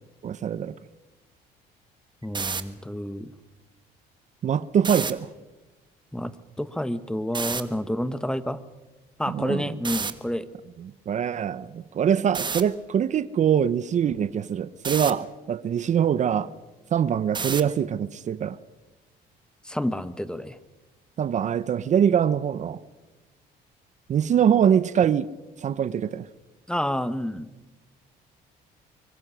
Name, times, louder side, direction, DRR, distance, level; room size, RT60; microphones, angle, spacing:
voice 1, 0.2-0.7 4.4-5.3 9.3-9.7 11.1-16.5 16.9-18.6 21.2-22.8 24.1-25.3 25.6-26.2, right 8 dB, 45° right, 0.8 m, -23 dB
voice 2, 2.2-3.3 6.1-8.6 9.2-10.5 19.6-20.6 26.7-27.5, equal, 5° left, 1.1 m, -29 dB
sound 1, 2.2-2.6 4.8-5.1 7.3-7.6 9.8-10.1 12.3-12.6 14.8-15.1 17.3-17.7, right 5 dB, 25° right, 1.5 m, -29 dB
24.5 x 24.0 x 6.3 m
cardioid pair, 110°, 17 cm